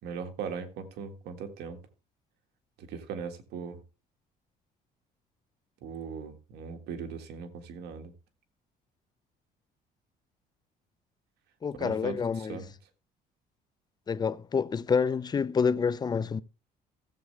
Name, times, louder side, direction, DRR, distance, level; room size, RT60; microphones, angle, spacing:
voice 1, 0.0-1.8 2.8-3.8 5.8-8.1 11.8-12.7, right 6 dB, 80° right, 1.8 m, -39 dB
voice 2, 11.6-12.6 14.1-16.4, left 6 dB, 25° left, 0.5 m, -28 dB
15.0 x 7.6 x 3.3 m
cardioid pair, 110°, 17 cm